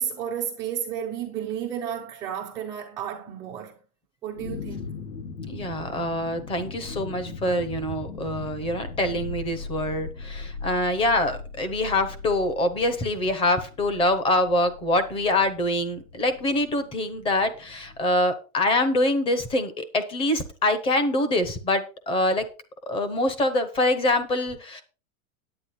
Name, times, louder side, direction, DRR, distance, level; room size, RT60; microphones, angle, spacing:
voice 1, 0.0-3.8 4.2-4.9, right 9 dB, 10° right, 0.4 m, -32 dB
sound 1, 4.3-18.0, left 4 dB, 65° left, 3.0 m, -39 dB
voice 2, 5.5-22.5 22.9-24.8, left 1 dB, 15° left, 0.8 m, -25 dB
9.6 x 8.9 x 4.2 m
supercardioid pair, 165°, 43 cm